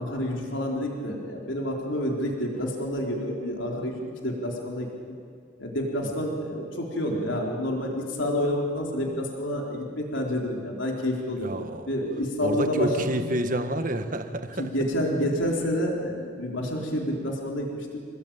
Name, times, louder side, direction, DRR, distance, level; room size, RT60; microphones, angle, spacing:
voice 1, 0.0-5.1 5.6-11.5 11.9-12.9 14.6-17.9, equal, 75° left, 0 dB, 4.0 m, -29 dB
voice 2, 11.4-11.9 12.4-14.7, right 1 dB, 45° right, 7 dB, 1.7 m, -29 dB
28.0 x 19.5 x 9.1 m, 2.2 s
head